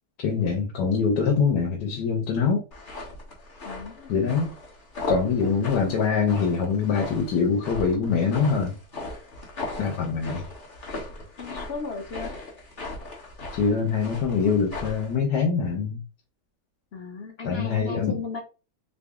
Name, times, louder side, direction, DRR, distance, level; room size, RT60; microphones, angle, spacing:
voice 1, 0.2-2.6 4.1-4.6 5.1-8.7 9.8-10.4 13.5-16.0 17.4-18.1, left 5 dB, 85° left, 1.4 m, -24 dB
sound 1, 2.7-15.1, left 2 dB, 35° left, 1.1 m, -37 dB
voice 2, 3.6-4.5 11.4-12.3 16.9-18.4, left 4 dB, 55° left, 0.7 m, -36 dB
3.9 x 2.0 x 3.5 m
omnidirectional pair, 1.7 m